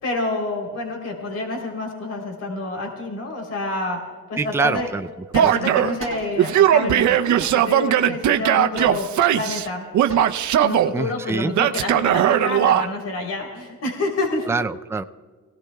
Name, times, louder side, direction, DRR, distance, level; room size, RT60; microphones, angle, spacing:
voice 1, 0.0-4.0 4.3-4.9 5.3-9.8 10.6-14.5, left 2 dB, 55° left, 2 dB, 3.6 m, -28 dB
voice 2, 4.4-5.1 5.4-5.5 10.9-11.5 14.5-15.0, right 4 dB, 10° right, 9 dB, 0.4 m, -24 dB
sound 1, 4.6-5.1 5.4-5.5 6.0-6.5 7.4-8.1 8.8-9.4 9.8-9.9 10.1-10.5, right 5 dB, 45° right, 1.8 m, -38 dB
Male speech man speaking / Yell, 5.3-6.0 6.4-9.7 9.9-10.9 11.5-12.9, right 10 dB, 70° right, 0.7 m, -18 dB
25.5 x 17.5 x 2.3 m, 1.5 s
cardioid pair, 90°, 30 cm